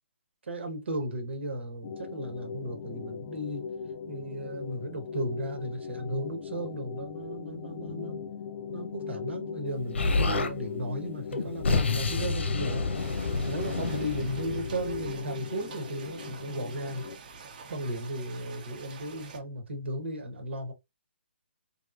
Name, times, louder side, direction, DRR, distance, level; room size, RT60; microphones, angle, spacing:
voice 1, 0.4-3.7 4.1-8.2 8.7-12.9 13.5-17.0 17.7-20.7, right 1 dB, 75° right, 1.1 m, -35 dB
sound 1, 1.8-17.2, left 6 dB, 45° left, 0.5 m, -40 dB
Explosion, 9.9-10.5 11.3-15.2, left 3 dB, 80° left, 0.9 m, -29 dB
sound 2, 12.9-19.4, right 5 dB, 45° right, 0.8 m, -47 dB
3.4 x 2.8 x 2.4 m
hypercardioid pair, 150°, 6 cm